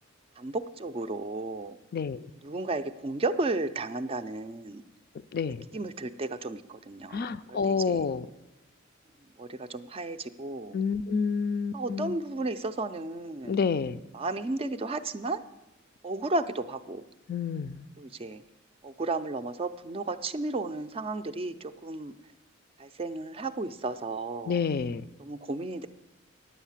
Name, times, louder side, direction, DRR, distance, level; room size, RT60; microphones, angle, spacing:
voice 1, 0.4-1.8 2.4-4.8 5.7-8.1 9.4-10.8 11.7-13.6 14.1-15.4 16.0-17.0 18.0-18.4 18.8-22.1 22.8-24.6 25.2-25.9, right 2 dB, 25° right, 10 dB, 0.4 m, -33 dB
voice 2, 7.1-8.3 10.7-12.2 13.5-14.0 17.3-17.8 24.5-25.0, left 5 dB, 50° left, 13 dB, 0.4 m, -28 dB
10.0 x 8.2 x 7.2 m, 0.96 s
head